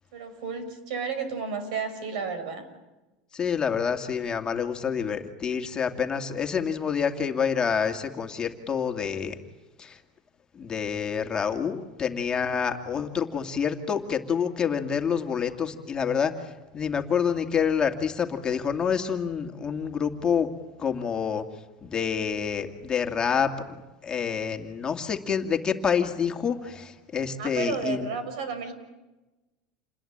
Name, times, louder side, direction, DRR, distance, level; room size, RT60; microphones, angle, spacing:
voice 1, 0.1-2.7 27.4-28.7, right 6 dB, 85° right, 10 dB, 6.2 m, -32 dB
voice 2, 3.3-9.4 9.8-10.0 10.6-20.5 20.8-21.4 21.8-23.8 24.0-28.1, left 7 dB, 20° left, 4 dB, 2.3 m, -27 dB
28.5 x 20.5 x 8.8 m, 1.1 s
supercardioid pair, 145°, 4 cm